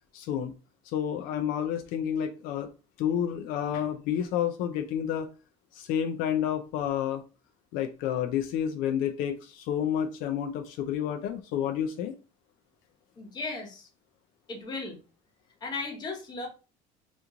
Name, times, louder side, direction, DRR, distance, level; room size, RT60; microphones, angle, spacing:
voice 1, 0.1-0.5 0.8-2.7 3.0-5.3 5.7-7.2 7.7-12.1, left 9 dB, 75° left, 5 dB, 0.4 m, -30 dB
voice 2, 13.2-13.9 14.5-15.0 15.6-16.5, left 3 dB, 30° left, 2 dB, 0.9 m, -36 dB
2.9 x 2.5 x 3.5 m, 0.33 s
cardioid pair, 150°, 15 cm